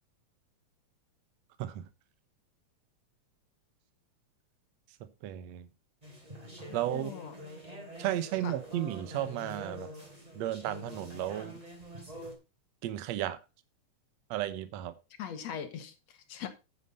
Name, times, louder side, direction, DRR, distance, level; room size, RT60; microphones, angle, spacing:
voice 1, 5.2-5.7 6.7-7.1 8.0-9.9 10.3-11.6 12.8-13.4 14.3-15.0, right 13 dB, 70° right, 2.1 m, -34 dB
sound 1, 6.0-12.3, equal, 10° right, 3.1 m, -46 dB
voice 2, 6.9-7.3 8.4-8.5 15.2-16.5, left 8 dB, 65° left, 2.6 m, -40 dB
9.4 x 9.2 x 4.2 m
omnidirectional pair, 3.4 m